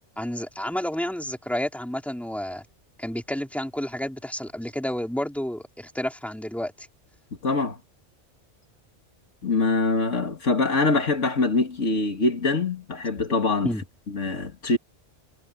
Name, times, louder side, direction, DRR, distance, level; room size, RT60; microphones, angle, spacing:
voice 1, 0.2-2.6 3.0-6.9 13.6-13.8, left 1 dB, ahead, 3.7 m, -30 dB
voice 2, 7.4-7.8 9.4-13.7 14.1-14.8, left 3 dB, 80° left, 2.7 m, -24 dB
omnidirectional pair, 1.2 m